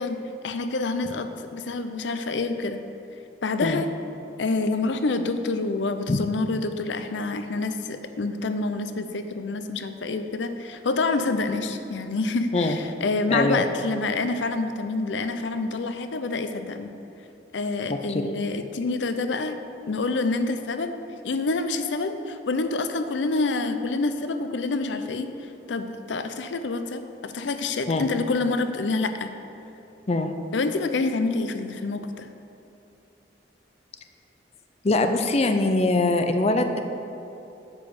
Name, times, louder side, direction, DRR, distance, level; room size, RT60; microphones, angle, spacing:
voice 1, 0.0-2.8 3.4-3.9 4.4-16.9 17.5-19.6 19.9-20.9 21.2-29.3 30.5-32.3, left 3 dB, 90° left, 9 dB, 0.6 m, -27 dB
voice 2, 13.3-13.6 17.9-18.2 27.9-28.1 30.1-30.3 34.8-36.8, left 2 dB, 35° left, 7 dB, 0.5 m, -22 dB
9.0 x 5.3 x 7.1 m, 2.8 s
head